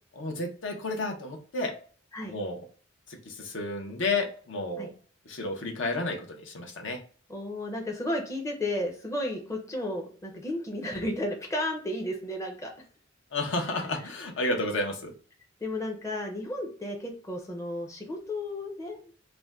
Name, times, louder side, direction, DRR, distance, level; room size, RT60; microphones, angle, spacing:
voice 1, 0.2-1.7 2.3-2.6 3.1-4.9 5.3-7.0 13.3-15.1, left 2 dB, 70° left, 3 dB, 0.6 m, -31 dB
voice 2, 7.3-12.7 15.6-19.0, left 1 dB, 15° left, 1 dB, 0.5 m, -33 dB
2.5 x 2.1 x 3.3 m, 0.43 s
head